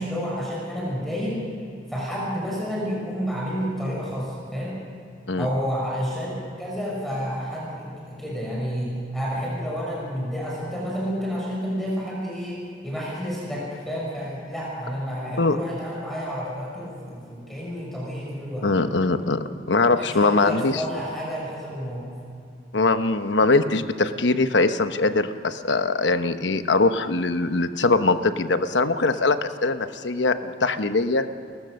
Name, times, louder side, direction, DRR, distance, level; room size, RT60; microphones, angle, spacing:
voice 1, 0.0-1.4 1.9-4.8 5.4-6.3 6.6-18.7 19.9-22.1, equal, ahead, -5 dB, 6.1 m, -30 dB
voice 2, 18.6-20.8 22.7-31.3, left 3 dB, 80° left, 10 dB, 1.0 m, -22 dB
29.5 x 15.0 x 6.5 m, 2.4 s
head